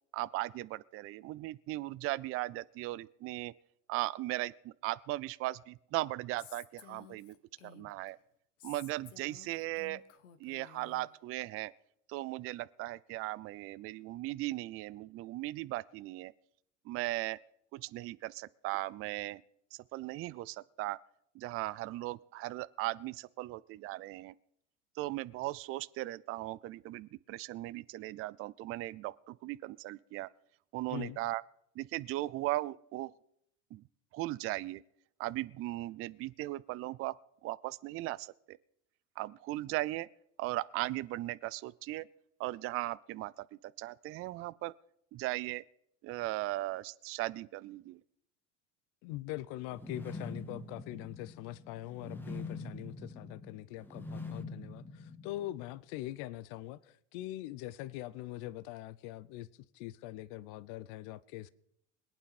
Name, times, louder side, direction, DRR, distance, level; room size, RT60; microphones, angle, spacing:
voice 1, 0.1-3.5 3.9-7.4 7.6-8.2 8.6-10.0 10.4-11.7 12.1-16.3 16.9-17.4 17.7-19.4 19.7-21.0 21.3-24.3 25.0-30.3 30.7-31.4 31.8-33.1 33.7-33.8 34.1-34.8 35.2-37.1 37.4-38.6 39.2-40.1 40.4-42.1 42.4-43.5 43.8-44.7 45.1-45.6 46.0-48.0, right 17 dB, 40° right, 18 dB, 0.5 m, -38 dB
Female speech woman speaking, 6.4-8.1 8.6-11.1, left 10 dB, 80° left, 1.2 m, -54 dB
voice 2, 49.0-59.5 59.7-61.5, left 15 dB, 60° left, 19 dB, 0.7 m, -43 dB
sound 1, 49.7-55.8, left 2 dB, 5° left, 1.7 m, -44 dB
21.5 x 9.0 x 4.3 m, 0.72 s
hypercardioid pair, 85°, 37 cm